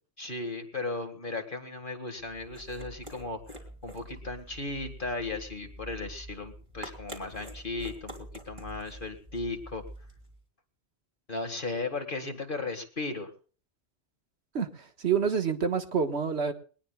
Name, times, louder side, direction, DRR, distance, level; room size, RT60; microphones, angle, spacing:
voice 1, 0.2-8.1 8.5-9.9 11.3-13.3, left 3 dB, 45° left, 6 dB, 2.0 m, -36 dB
sound 1, 2.2-10.4, right 1 dB, 25° right, 3.4 m, -46 dB
voice 2, 14.5-16.5, right 6 dB, 65° right, 7 dB, 1.7 m, -28 dB
21.5 x 19.5 x 2.3 m, 0.40 s
omnidirectional pair, 1.2 m